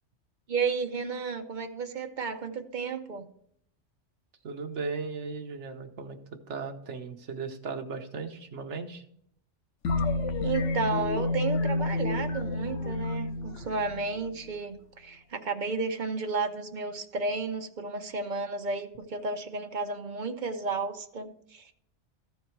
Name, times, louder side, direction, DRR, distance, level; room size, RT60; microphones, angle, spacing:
voice 1, 0.5-3.2 10.4-21.7, right 4 dB, 45° right, 7 dB, 0.8 m, -32 dB
voice 2, 4.4-6.2 6.5-9.0, right 4 dB, 70° right, 5 dB, 1.3 m, -36 dB
sound 1, 9.8-14.5, left 2 dB, 80° left, 1.1 m, -30 dB
14.0 x 4.7 x 4.4 m, 0.69 s
omnidirectional pair, 1.2 m